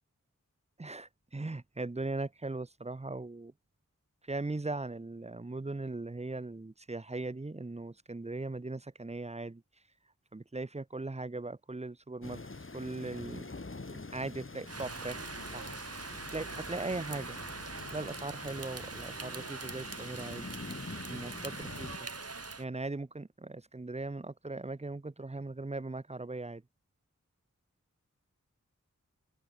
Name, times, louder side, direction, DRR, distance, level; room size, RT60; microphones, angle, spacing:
voice 1, 0.8-3.5 4.2-9.6 10.3-12.4 12.7-13.5 13.9-15.2 15.5-17.4 17.9-20.6 21.1-22.1 22.6-26.6, right 2 dB, 20° right, 0.8 m, -39 dB
sound 1, 12.2-22.0, left 3 dB, 40° left, 2.0 m, -46 dB
Rain, 14.7-22.6, right 3 dB, 50° right, 1.9 m, -43 dB
wide cardioid pair, 60°, 31 cm